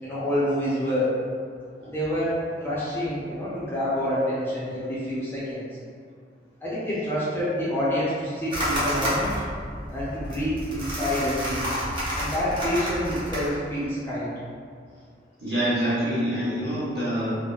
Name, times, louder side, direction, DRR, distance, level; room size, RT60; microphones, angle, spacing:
voice 1, 0.0-1.1 1.9-5.6 6.6-9.3 9.9-11.7 12.1-14.3, equal, 10° left, -9 dB, 0.5 m, -27 dB
sound 1, 8.5-13.5, equal, 25° right, 0.6 m, -30 dB
voice 2, 15.4-17.4, equal, 65° right, -10 dB, 1.1 m, -26 dB
3.3 x 2.0 x 2.3 m, 2.1 s
head